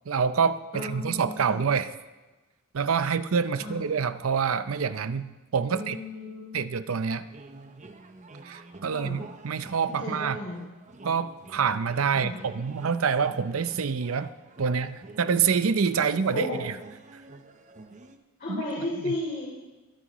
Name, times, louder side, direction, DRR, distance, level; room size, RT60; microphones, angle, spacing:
voice 1, 0.1-1.9 2.7-6.0 6.5-7.2 8.4-10.4 11.0-14.3 14.6-16.7 18.5-18.6 19.1-19.2, right 6 dB, 80° right, 13 dB, 0.6 m, -26 dB
voice 2, 0.7-1.6 3.6-3.8 5.7-6.6 8.8-9.2 10.0-10.7 12.1-12.4 16.3-16.6 18.4-19.5, left 2 dB, 45° left, -6 dB, 3.0 m, -34 dB
sound 1, 7.1-18.2, right 2 dB, 35° right, 0.8 m, -48 dB
21.5 x 10.0 x 3.1 m, 1.2 s
head